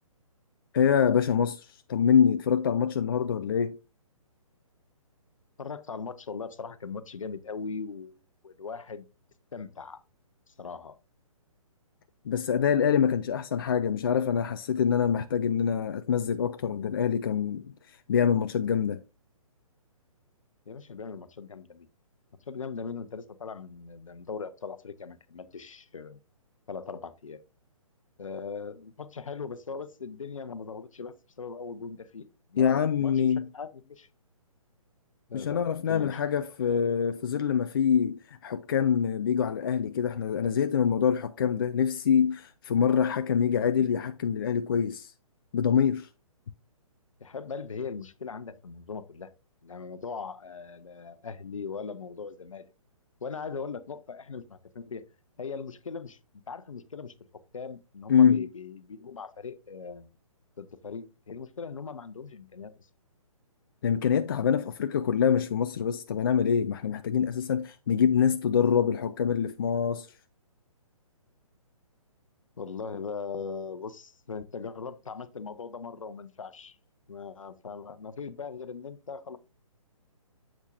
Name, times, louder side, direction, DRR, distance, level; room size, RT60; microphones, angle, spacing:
voice 1, 0.7-3.8 12.3-19.0 32.6-33.5 35.3-45.1 45.5-46.1 58.1-58.5 63.8-70.1, left 7 dB, 40° left, 0.4 m, -25 dB
voice 2, 5.6-8.2 8.4-9.1 9.5-10.0 10.5-11.0 20.7-21.9 22.5-26.2 26.7-27.4 28.2-33.3 33.5-34.1 35.3-36.4 47.2-49.3 49.6-52.7 53.2-55.1 55.4-56.2 56.5-57.1 57.5-60.1 60.6-62.9 72.6-76.8 77.1-79.4, left 5 dB, 65° left, 0.8 m, -39 dB
8.0 x 7.4 x 2.6 m
figure-of-eight pair, 130°, 19 cm